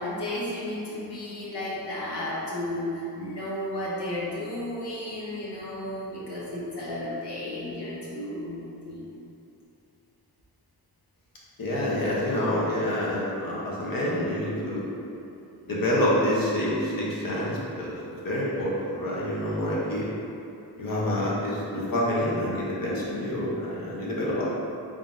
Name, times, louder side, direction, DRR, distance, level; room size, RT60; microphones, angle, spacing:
voice 1, 0.0-9.0, left 1 dB, 75° left, -7 dB, 1.1 m, -33 dB
voice 2, 11.6-14.9 15.7-17.9 18.2-20.0 20.8-24.5, left 1 dB, 55° left, -6 dB, 1.0 m, -27 dB
3.7 x 3.5 x 2.6 m, 2.8 s
wide cardioid pair, 95°, 41 cm